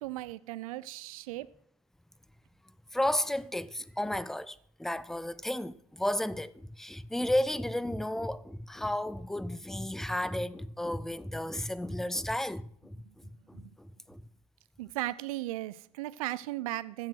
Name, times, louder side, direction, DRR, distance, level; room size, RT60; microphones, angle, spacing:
voice 1, 0.0-1.5 13.5-13.7 14.8-17.1, right 17 dB, 60° right, 0.7 m, -36 dB
voice 2, 2.9-14.2, left 1 dB, ahead, 0.4 m, -33 dB
14.5 x 7.4 x 5.9 m
figure-of-eight pair, 80°, 20 cm